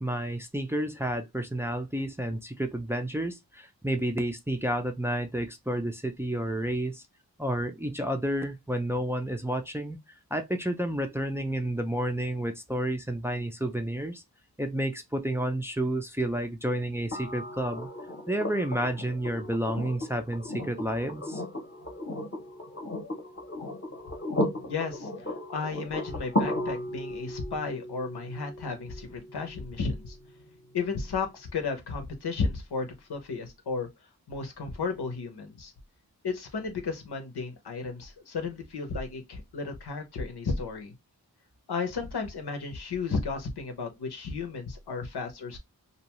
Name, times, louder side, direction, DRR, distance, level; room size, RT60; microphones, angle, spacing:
voice 1, 0.0-7.0 7.4-10.0 10.3-14.2 14.6-17.9 18.3-21.4, right 1 dB, 5° right, 0.4 m, -30 dB
sound 1, 17.1-31.1 32.8-32.9, left 1 dB, 30° left, 0.8 m, -35 dB
voice 2, 24.7-30.2 30.7-33.9 34.3-35.7 36.2-40.9 41.7-45.6, left 4 dB, 90° left, 0.8 m, -33 dB
2.6 x 2.2 x 2.9 m
wide cardioid pair, 70°, 38 cm